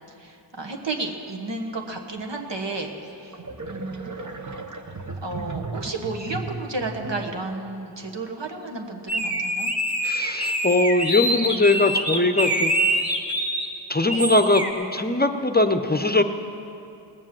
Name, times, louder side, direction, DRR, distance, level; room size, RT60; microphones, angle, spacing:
voice 1, 0.2-3.4 3.7-4.5 5.2-9.7 14.0-14.3, right 2 dB, 75° right, 2 dB, 1.4 m, -32 dB
sound 1, 3.3-7.5, right 3 dB, 40° right, 0.9 m, -35 dB
sound 2, 9.1-13.7 14.1-14.7, right 1 dB, 5° right, 1.5 m, -25 dB
voice 2, 10.0-12.7 13.9-16.2, left 2 dB, 20° left, 8 dB, 0.7 m, -21 dB
18.5 x 7.3 x 7.5 m, 2.7 s
wide cardioid pair, 45°, 44 cm